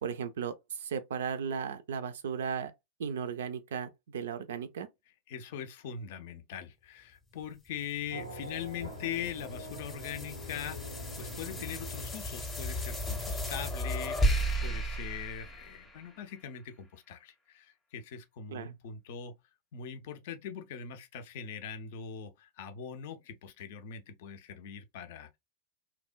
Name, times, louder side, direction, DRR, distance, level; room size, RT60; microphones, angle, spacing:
voice 1, 0.0-2.7 3.0-4.9 18.5-18.7, right 7 dB, 60° right, 0.3 m, -36 dB
voice 2, 5.3-19.4 19.7-25.4, left 8 dB, 50° left, 0.5 m, -41 dB
sound 1, 7.8-16.4, equal, 15° left, 0.7 m, -35 dB
Race car auto racing / Accelerating revving vroom, 8.1-12.8, equal, 90° left, 0.8 m, -44 dB
2.7 x 2.1 x 2.4 m
figure-of-eight pair, 90°, 0 cm